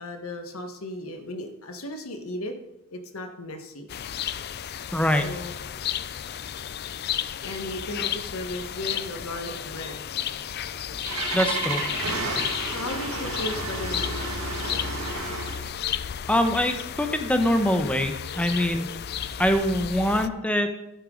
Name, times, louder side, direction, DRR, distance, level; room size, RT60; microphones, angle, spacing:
voice 1, 0.0-2.5 2.9-3.9 5.2-5.5 7.4-10.0 12.7-14.1, left 1 dB, 75° left, 5 dB, 1.5 m, -35 dB
sound 1, 3.9-20.3, left 9 dB, 45° left, 0.4 m, -33 dB
voice 2, 4.9-5.2 11.3-11.8 16.3-18.9 19.4-20.7, equal, 5° left, 6 dB, 0.9 m, -23 dB
Engine starting, 10.6-15.7, right 3 dB, 75° right, 2.0 m, -32 dB
12.5 x 10.0 x 3.9 m, 0.91 s
head